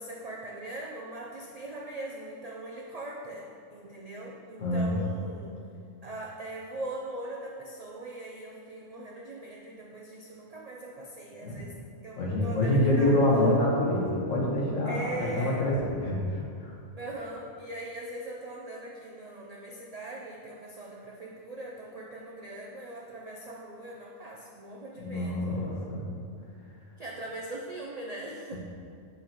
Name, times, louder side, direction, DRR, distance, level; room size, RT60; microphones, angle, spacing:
voice 1, 0.0-5.6 6.0-11.8 12.0-13.5 14.9-15.6 17.0-25.7 27.0-28.6, right 1 dB, 75° right, -2 dB, 0.3 m, -40 dB
voice 2, 4.6-5.0 11.4-11.6 12.1-16.7 25.0-26.1, left 1 dB, 70° left, -4 dB, 1.7 m, -26 dB
7.0 x 6.5 x 3.0 m, 2.4 s
omnidirectional pair, 1.4 m